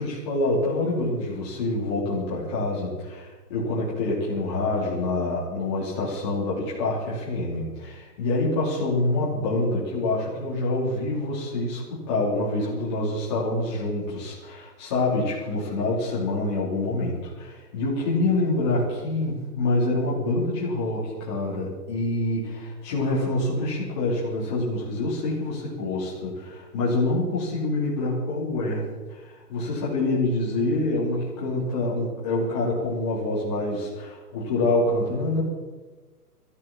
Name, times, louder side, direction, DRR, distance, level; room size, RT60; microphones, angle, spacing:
voice 1, 0.0-28.8 29.1-35.4, left 2 dB, 15° left, -8 dB, 3.0 m, -26 dB
14.0 x 13.0 x 7.2 m, 1.3 s
hypercardioid pair, 175°, 48 cm